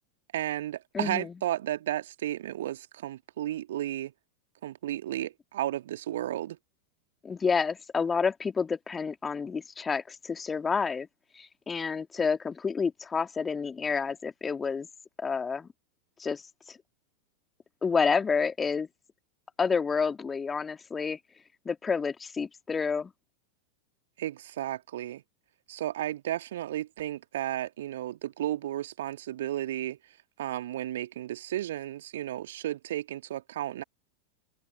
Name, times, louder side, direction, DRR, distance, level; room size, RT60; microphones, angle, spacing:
voice 1, 0.3-4.1 4.6-6.6 24.2-25.2 25.7-30.0 30.4-33.8, right 13 dB, 60° right, 2.2 m, -33 dB
voice 2, 0.9-1.3 7.2-11.1 11.4-14.9 15.2-15.7 16.2-16.4 16.7-16.8 17.8-18.9 19.6-21.2 21.7-23.1, left 5 dB, 15° left, 2.1 m, -29 dB
figure-of-eight pair, 90°, 0 cm